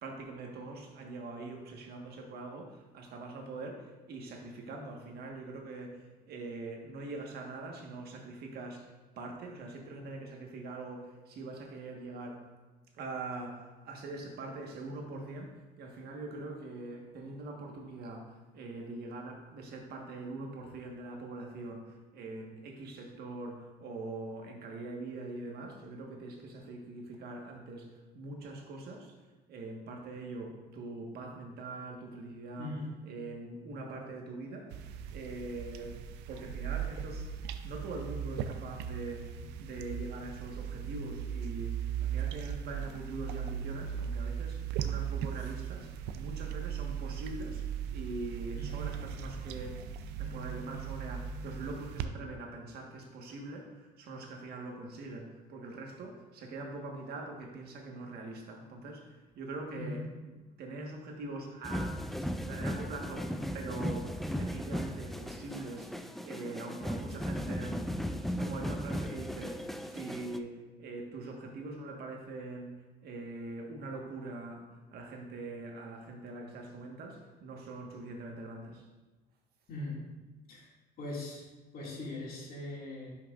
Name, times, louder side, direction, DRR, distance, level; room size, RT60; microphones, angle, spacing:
voice 1, 0.0-12.4 12.9-29.1 29.5-32.7 33.0-34.8 35.1-35.9 36.3-37.3 37.6-49.8 50.2-60.3 60.6-62.0 62.4-67.8 68.3-72.8 73.0-74.7 74.9-78.8, right 2 dB, 70° right, 1 dB, 1.4 m, -43 dB
voice 2, 32.6-32.9 48.5-48.7 59.7-60.0 79.7-80.1 80.5-80.7 81.0-81.4 81.7-83.1, left 2 dB, 60° left, -3 dB, 2.3 m, -40 dB
sound 1, 34.7-52.1, right 8 dB, 85° right, 0.5 m, -38 dB
sound 2, 61.6-70.4, equal, ahead, 0.4 m, -36 dB
11.0 x 6.0 x 2.5 m, 1.2 s
cardioid pair, 110°, 17 cm